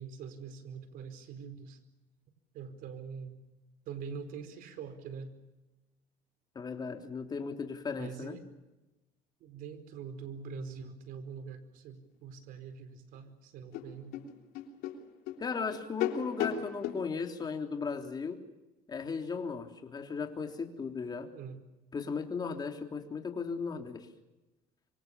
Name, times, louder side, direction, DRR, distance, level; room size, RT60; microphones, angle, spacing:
voice 1, 0.0-1.8 2.5-3.4 3.9-5.3 7.9-8.4 9.4-14.2 21.3-21.6, right 6 dB, 65° right, 9 dB, 4.8 m, -44 dB
voice 2, 6.6-8.4 15.4-18.4 18.9-21.3 21.9-24.1, left 5 dB, 25° left, 3 dB, 3.5 m, -36 dB
sound 1, 13.1-13.2 13.7-17.0, left 10 dB, 75° left, 3.4 m, -36 dB
26.5 x 24.5 x 7.0 m, 1.1 s
cardioid pair, 130°, 15 cm